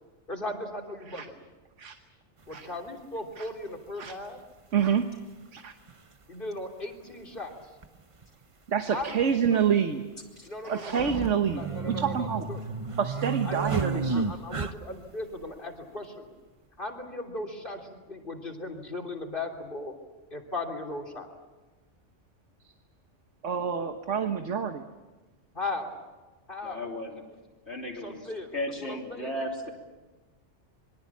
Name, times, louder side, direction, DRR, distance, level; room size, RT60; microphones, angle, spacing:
voice 1, 0.3-1.4 2.5-4.4 6.3-7.6 8.9-9.6 10.4-11.3 11.6-12.6 13.4-16.3 16.8-19.9 20.3-21.3 25.5-26.0 26.5-26.9 28.0-28.5 28.8-29.3, left 2 dB, 45° left, 2 dB, 3.5 m, -37 dB
sound 1, 2.5-2.6 4.1-4.2 5.6-5.7 5.9-6.0 7.8-8.0 8.2-8.3 9.0-9.5 10.9-15.1, right 4 dB, 30° right, 1.0 m, -32 dB
voice 2, 4.7-5.0 5.5-5.7 8.7-10.0 10.6-12.5 13.0-14.3 23.4-24.8, right 7 dB, 80° right, 6 dB, 1.5 m, -27 dB
voice 3, 26.6-27.2 27.7-29.7, left 1 dB, 60° left, -3 dB, 3.9 m, -35 dB
27.0 x 23.0 x 7.3 m, 1.2 s
omnidirectional pair, 1.3 m